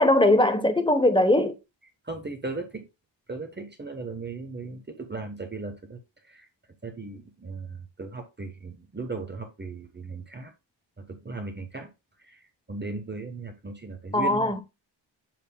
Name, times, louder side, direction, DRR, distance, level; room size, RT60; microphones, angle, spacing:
voice 1, 0.0-1.6 14.1-14.6, left 1 dB, 10° left, 0.9 m, -20 dB
voice 2, 2.0-2.9 3.3-6.0 6.2-6.5 6.8-10.5 11.0-11.9 12.2-12.4 12.7-14.6, right 3 dB, 25° right, 1.1 m, -37 dB
7.6 x 6.5 x 2.2 m
cardioid pair, 95°, 45 cm